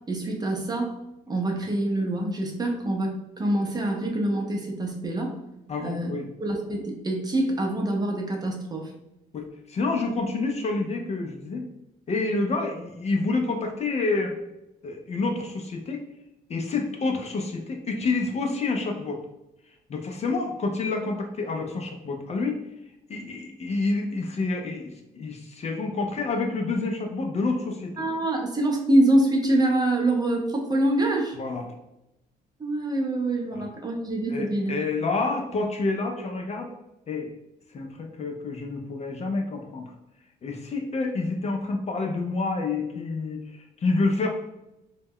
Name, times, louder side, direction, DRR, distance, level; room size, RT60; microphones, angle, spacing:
voice 1, 0.1-1.0 1.3-5.3 5.8-6.1 6.4-8.9 28.0-31.3 32.6-34.7, right 1 dB, 25° right, 0 dB, 0.6 m, -25 dB
voice 2, 5.7-6.3 9.3-11.7 12.1-14.4 14.8-16.0 16.5-19.2 19.9-22.6 23.1-27.9 31.4-31.7 33.5-33.7 34.3-36.7 37.1-37.3 37.7-39.9 40.4-44.3, left 3 dB, 40° left, 3 dB, 0.4 m, -28 dB
2.2 x 2.0 x 3.5 m, 0.91 s
cardioid pair, 85°, 18 cm